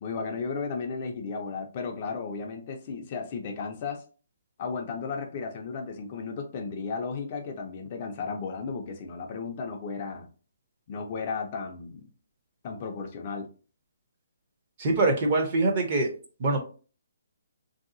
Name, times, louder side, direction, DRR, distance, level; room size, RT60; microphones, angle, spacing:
voice 1, 0.0-4.0 4.6-10.3 10.9-12.1 12.6-13.5, left 5 dB, 25° left, 3 dB, 0.4 m, -34 dB
voice 2, 14.8-16.1 16.4-16.6, right 2 dB, 25° right, 3 dB, 0.5 m, -24 dB
3.2 x 2.7 x 2.5 m, 0.36 s
hypercardioid pair, 175°, 0 cm